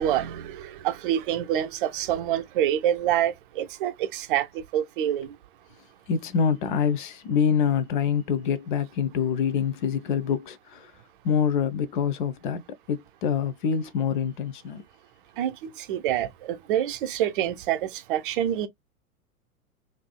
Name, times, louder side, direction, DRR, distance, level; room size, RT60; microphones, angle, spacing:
voice 1, 0.0-5.4 15.4-18.7, right 11 dB, 35° right, 0.6 m, -27 dB
voice 2, 6.1-10.9 11.2-14.8, left 7 dB, 35° left, 0.6 m, -26 dB
3.3 x 2.6 x 2.2 m
figure-of-eight pair, 100°, 45 cm